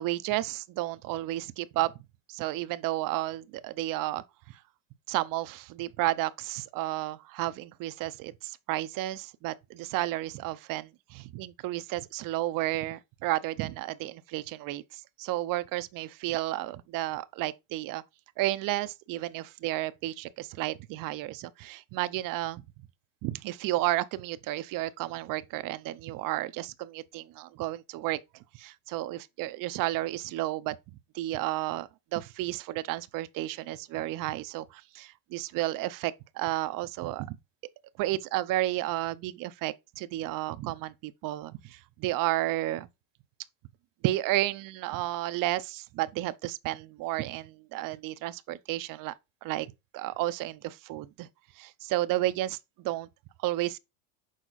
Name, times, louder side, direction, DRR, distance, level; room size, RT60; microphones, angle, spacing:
voice 1, 0.0-1.9 2.3-4.6 5.1-18.0 18.4-22.6 23.2-28.2 28.5-30.8 31.1-37.4 38.0-42.9 44.0-49.1 49.4-49.7 49.9-51.3 51.6-53.1 53.4-53.8, right 16 dB, 45° right, 0.7 m, -32 dB
6.4 x 4.4 x 4.0 m
supercardioid pair, 120°, 45 cm